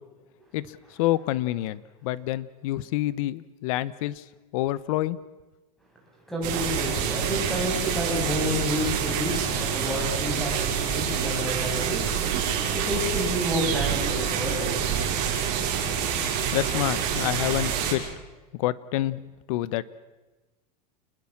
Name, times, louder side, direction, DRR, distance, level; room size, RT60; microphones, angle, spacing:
voice 1, 0.5-4.2 4.5-5.2 16.5-18.0 18.5-19.2 19.5-19.9, left 15 dB, 55° left, 18 dB, 1.1 m, -28 dB
voice 2, 6.3-12.0 12.7-14.7, left 1 dB, ahead, -2 dB, 7.5 m, -29 dB
sound 1, 6.4-17.9, right 8 dB, 45° right, 6.0 m, -27 dB
28.5 x 20.5 x 7.4 m, 1.2 s
supercardioid pair, 165°, 21 cm